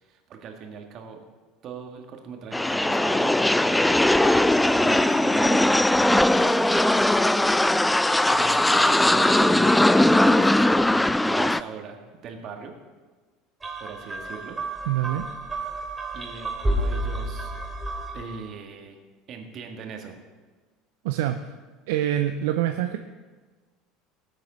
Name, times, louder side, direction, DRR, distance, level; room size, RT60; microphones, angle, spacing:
voice 1, 0.0-1.2 1.6-4.5 4.7-6.3 7.6-7.7 8.3-12.7 13.8-14.9 16.1-17.6 18.1-19.0 19.3-20.2, right 5 dB, 45° right, 3 dB, 1.9 m, -40 dB
sound 1, 2.5-11.6, left 1 dB, 5° left, 0.4 m, -19 dB
sound 2, 13.6-18.4, right 1 dB, 15° right, 2.5 m, -30 dB
voice 2, 14.9-15.3 21.0-21.4 21.9-23.0, right 12 dB, 65° right, 7 dB, 0.5 m, -25 dB
18.5 x 7.9 x 4.0 m, 1.3 s
figure-of-eight pair, 70°, 0 cm